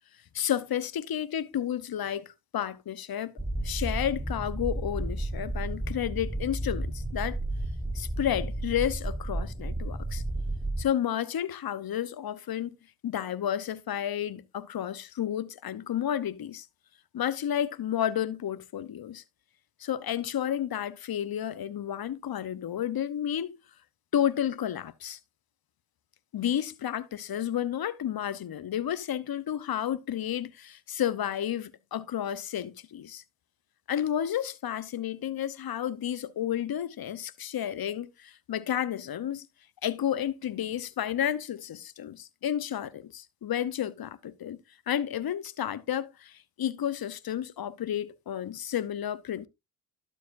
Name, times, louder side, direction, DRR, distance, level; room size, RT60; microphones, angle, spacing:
voice 1, 0.3-3.3 3.6-7.4 7.9-10.2 10.8-12.8 13.0-16.7 17.1-19.2 19.8-23.6 24.1-25.2 26.3-33.2 33.9-39.5 39.8-44.6 44.9-49.5, left 10 dB, 50° left, 0.9 m, -31 dB
sound 1, 3.4-10.8, right 1 dB, ahead, 0.5 m, -32 dB
12.0 x 7.0 x 2.6 m
supercardioid pair, 55°, 45 cm